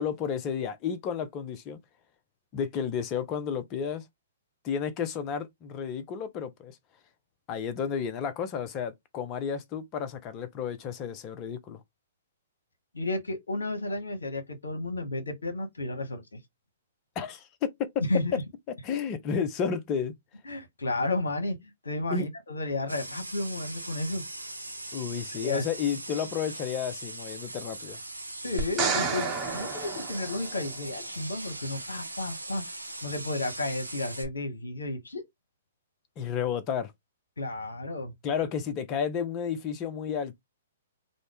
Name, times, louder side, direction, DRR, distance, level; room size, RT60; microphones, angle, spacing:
voice 1, 0.0-1.8 2.5-4.0 4.6-6.8 7.5-11.8 17.2-18.1 18.7-20.1 22.1-22.3 24.9-28.0 36.2-36.9 38.2-40.4, left 7 dB, 30° left, 0.6 m, -32 dB
voice 2, 12.9-16.4 18.1-18.4 20.4-24.2 25.4-25.7 28.4-32.6 33.0-35.2 37.4-38.1, left 2 dB, 75° left, 0.9 m, -32 dB
sound 1, 22.9-34.3, right 2 dB, 90° right, 0.5 m, -40 dB
sound 2, 28.6-30.9 34.2-34.3, right 5 dB, 25° right, 0.9 m, -31 dB
2.5 x 2.1 x 3.4 m
figure-of-eight pair, 115°, 0 cm